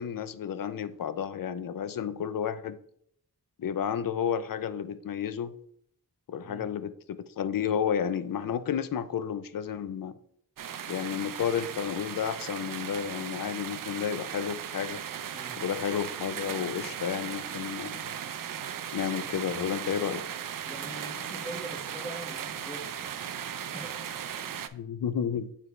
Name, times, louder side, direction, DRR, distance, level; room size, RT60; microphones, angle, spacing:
voice 1, 0.0-2.8 3.6-5.5 6.3-10.1 10.9-15.0 15.6-18.1 18.9-20.2 24.7-25.5, left 8 dB, 65° left, 0.5 m, -31 dB
sound 1, 10.6-24.7, right 9 dB, 60° right, 0.5 m, -37 dB
voice 2, 20.7-23.1 23.7-24.6, right 1 dB, 15° left, 1.5 m, -43 dB
9.1 x 3.3 x 3.1 m
wide cardioid pair, 95°, 37 cm